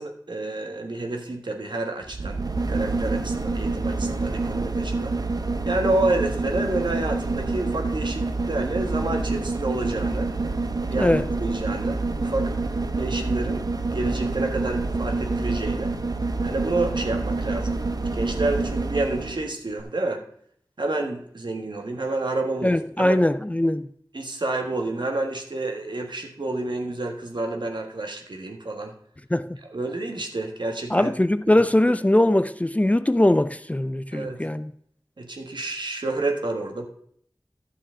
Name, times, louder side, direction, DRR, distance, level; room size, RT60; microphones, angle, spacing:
voice 1, 0.0-2.4 2.7-5.2 5.6-10.3 10.9-12.5 13.0-13.6 13.9-15.9 16.4-17.8 18.1-20.2 20.8-23.2 24.1-28.9 29.7-31.1 34.1-34.4 35.2-36.9, right 2 dB, 75° right, 1.4 m, -29 dB
sound 1, 2.0-19.4 19.8-19.9, right 3 dB, 55° right, 0.7 m, -27 dB
voice 2, 22.6-23.9 29.3-29.6 30.9-34.7, left 1 dB, 15° left, 0.4 m, -21 dB
11.5 x 7.3 x 3.7 m
wide cardioid pair, 55°, 8 cm